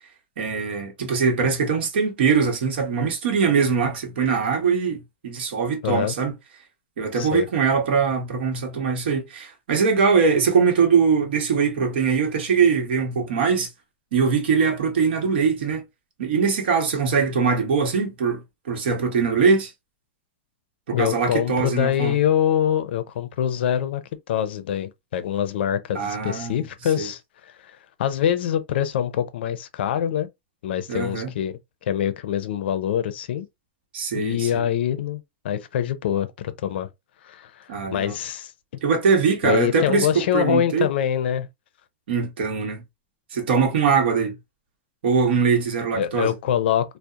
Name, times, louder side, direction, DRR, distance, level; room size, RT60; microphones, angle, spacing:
voice 1, 0.4-6.3 7.0-13.7 14.1-15.8 16.2-19.7 20.9-22.1 25.9-26.6 27.0-27.1 30.9-31.3 33.9-34.7 37.7-38.1 38.8-40.1 40.3-40.9 42.1-42.8 43.3-44.4 45.0-46.3, right 5 dB, 75° right, 0.9 m, -22 dB
voice 2, 5.8-6.1 7.1-7.5 20.9-24.0 24.3-30.3 30.6-31.5 31.8-33.5 34.1-36.3 36.6-36.9 37.2-38.5 39.4-41.5 45.9-47.0, left 10 dB, 75° left, 0.4 m, -24 dB
2.7 x 2.0 x 2.3 m
supercardioid pair, 155°, 6 cm